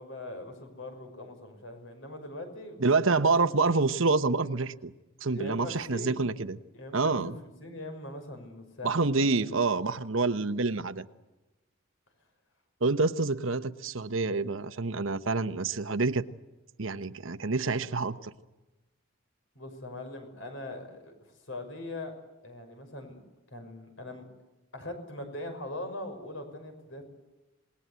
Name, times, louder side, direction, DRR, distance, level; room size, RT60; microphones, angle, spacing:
voice 1, 0.0-3.3 5.3-6.2 6.7-9.5 19.5-21.1 21.5-22.1 22.4-23.2 23.5-24.3 24.7-27.0, left 1 dB, 65° left, 6 dB, 5.9 m, -41 dB
voice 2, 2.8-4.9 5.2-6.6 6.9-7.4 8.8-11.0 12.8-16.3 16.8-18.3, right 3 dB, 70° right, 12 dB, 1.0 m, -27 dB
27.5 x 20.5 x 8.2 m, 1.1 s
head